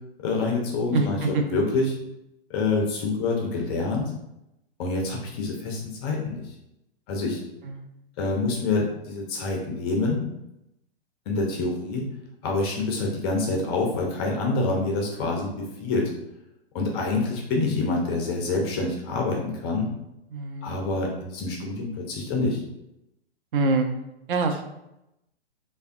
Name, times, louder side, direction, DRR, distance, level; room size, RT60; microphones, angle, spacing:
voice 1, 0.2-1.9 2.5-4.1 4.8-6.5 7.1-7.4 8.2-10.2 11.3-12.1 12.4-16.1 16.7-19.9 20.6-22.6, left 3 dB, 25° left, 0 dB, 0.4 m, -26 dB
voice 2, 0.9-1.4 7.6-7.9 20.3-20.8 23.5-23.9 24.3-24.7, right 3 dB, 55° right, 5 dB, 0.5 m, -25 dB
3.3 x 2.1 x 2.5 m, 0.87 s
hypercardioid pair, 120°, 32 cm